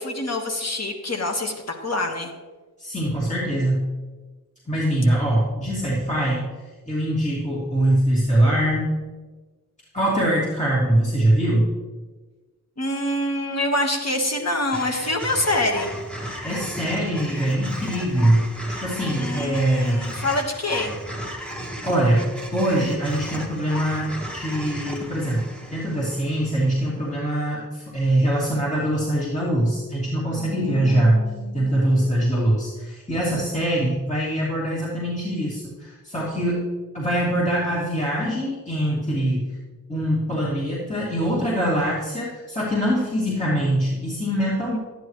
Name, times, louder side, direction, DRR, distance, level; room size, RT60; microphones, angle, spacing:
voice 1, 0.0-2.3 12.8-15.9 19.2-20.9 30.4-32.3, left 1 dB, 50° left, 2 dB, 1.6 m, -26 dB
voice 2, 2.8-3.9 4.7-6.5 6.9-8.9 9.9-11.7 16.2-18.4 18.8-20.2 21.8-22.3 22.5-31.2 31.5-36.7 36.9-39.5 39.9-44.8, right 1 dB, 20° left, -8 dB, 2.6 m, -23 dB
sound 1, 14.7-27.0, equal, 5° left, 1.5 m, -35 dB
12.0 x 9.9 x 3.2 m, 1.3 s
wide cardioid pair, 65°, 33 cm